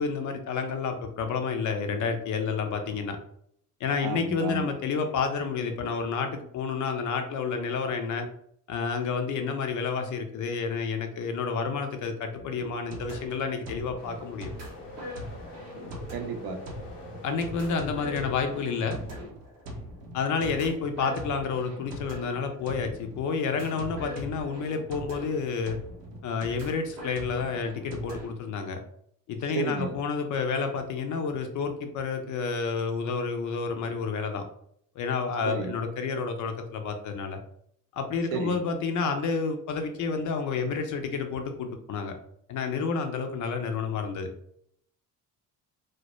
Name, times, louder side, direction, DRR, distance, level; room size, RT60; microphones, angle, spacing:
voice 1, 0.0-3.2 3.8-8.3 8.7-14.5 17.2-19.0 20.1-25.8 26.2-28.8 29.3-34.4 35.0-37.4 37.9-42.1 42.5-44.3, left 5 dB, 40° left, 6 dB, 0.4 m, -30 dB
voice 2, 4.0-4.7 16.1-16.6 29.5-30.0 35.4-35.7 38.3-38.6, right 4 dB, 50° right, 5 dB, 0.6 m, -32 dB
sound 1, 12.3-28.3, equal, 90° right, 0.6 m, -41 dB
sound 2, 14.0-19.2, left 2 dB, 80° left, 0.6 m, -45 dB
2.0 x 2.0 x 2.9 m, 0.68 s
hypercardioid pair, 50°, 47 cm